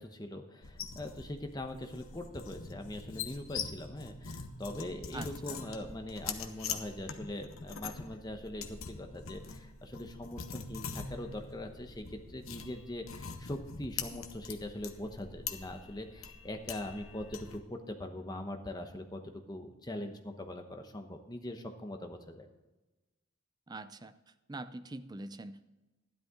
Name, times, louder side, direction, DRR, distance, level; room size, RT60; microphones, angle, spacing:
voice 1, 0.0-22.5, left 1 dB, 20° left, 5 dB, 1.0 m, -42 dB
sound 1, 0.6-17.6, left 6 dB, 75° left, 1.0 m, -43 dB
voice 2, 5.1-5.7 23.7-24.1 24.5-25.6, right 2 dB, 20° right, 11 dB, 0.4 m, -44 dB
12.5 x 11.0 x 3.7 m, 1.1 s
head